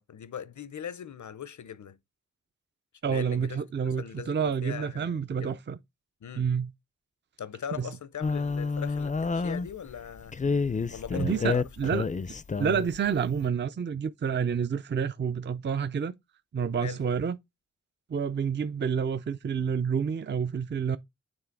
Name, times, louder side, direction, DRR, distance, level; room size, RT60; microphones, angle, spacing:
voice 1, 0.0-2.0 3.0-5.6 6.2-6.4 7.4-10.3 10.9-11.9 16.8-17.0, left 8 dB, 80° left, 0.6 m, -40 dB
voice 2, 3.0-5.8 6.4-6.7 7.8-7.9 11.1-12.1 12.6-16.1 16.5-17.4 18.1-21.0, right 7 dB, 40° right, 0.4 m, -29 dB
sound 1, 8.2-9.9 10.3-13.0, left 4 dB, 25° left, 0.4 m, -29 dB
7.0 x 3.1 x 4.6 m
cardioid pair, 40°, 29 cm